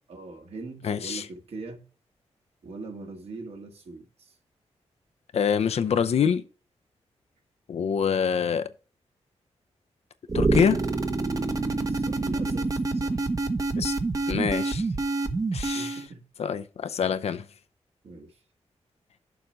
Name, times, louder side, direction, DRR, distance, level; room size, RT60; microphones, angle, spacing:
voice 1, 0.1-1.9 2.6-4.3 11.9-13.3 15.7-16.2 16.9-17.3 18.0-18.4, right 3 dB, 65° right, 1.8 m, -42 dB
voice 2, 0.8-1.2 5.3-6.4 7.7-8.6 10.3-10.8 13.8-13.9 14.3-14.8 15.5-16.0 16.4-17.4, left 7 dB, 65° left, 0.6 m, -25 dB
sound 1, 10.3-16.1, right 3 dB, 30° right, 0.9 m, -27 dB
7.0 x 4.4 x 5.2 m
wide cardioid pair, 100°, 11 cm